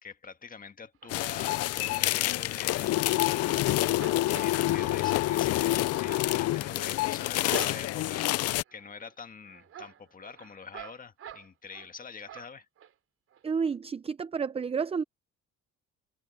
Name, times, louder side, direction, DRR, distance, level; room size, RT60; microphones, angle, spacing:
voice 1, 0.0-12.7, left 5 dB, 30° left, 1.6 m, -45 dB
sound 1, 1.0-1.8 2.2-3.5 3.8-8.2 8.7-9.1 9.4-11.9 12.2-12.9 13.3-13.4 13.7-13.8, right 10 dB, 50° right, 4.4 m, -47 dB
sound 2, 1.1-8.6, left 16 dB, 60° left, 0.5 m, -27 dB
voice 2, 13.4-15.0, right 6 dB, 20° right, 0.6 m, -30 dB
cardioid pair, 120°, 29 cm